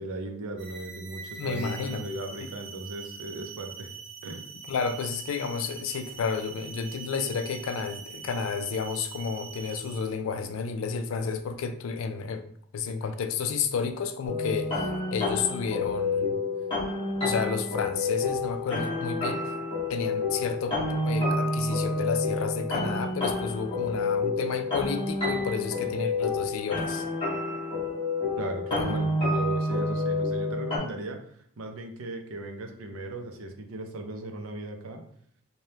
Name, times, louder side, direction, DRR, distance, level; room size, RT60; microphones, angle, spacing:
voice 1, 0.0-3.9 4.2-4.4 28.4-35.0, right 2 dB, 75° right, 4 dB, 0.5 m, -37 dB
sound 1, 0.6-10.1, right 6 dB, 30° right, 0.8 m, -43 dB
voice 2, 1.4-2.0 4.7-12.4 12.7-14.7 15.1-16.4 17.2-19.4 19.9-27.0 28.7-29.0, left 5 dB, 65° left, 8 dB, 0.3 m, -31 dB
sound 2, 14.3-30.8, left 2 dB, 25° left, 1.0 m, -29 dB
3.3 x 2.2 x 2.7 m, 0.63 s
head